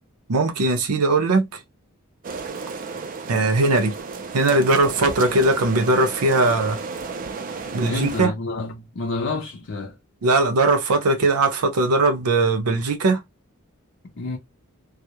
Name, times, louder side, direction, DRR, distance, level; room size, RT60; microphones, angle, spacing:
voice 1, 0.3-1.5 3.3-3.9 4.3-6.8 7.7-8.3 10.2-13.2, right 2 dB, 90° right, 0.6 m, -19 dB
sound 1, 2.2-8.2, right 4 dB, 40° right, 0.4 m, -33 dB
voice 2, 7.7-10.0 14.2-14.4, left 3 dB, 55° left, 0.5 m, -29 dB
2.3 x 2.0 x 2.7 m
head